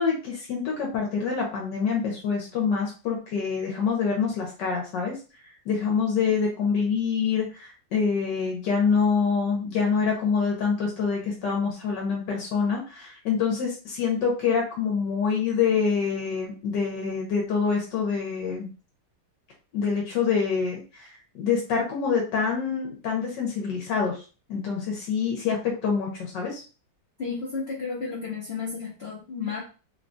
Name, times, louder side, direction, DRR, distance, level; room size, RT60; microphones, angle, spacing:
voice 1, 0.0-5.1 5.7-18.7 19.7-21.1 21.3-24.2 24.5-26.6, left 5 dB, 75° left, -1 dB, 1.4 m, -26 dB
voice 2, 27.2-29.6, left 5 dB, 50° left, -4 dB, 0.8 m, -32 dB
3.7 x 2.3 x 2.5 m, 0.34 s
omnidirectional pair, 1.9 m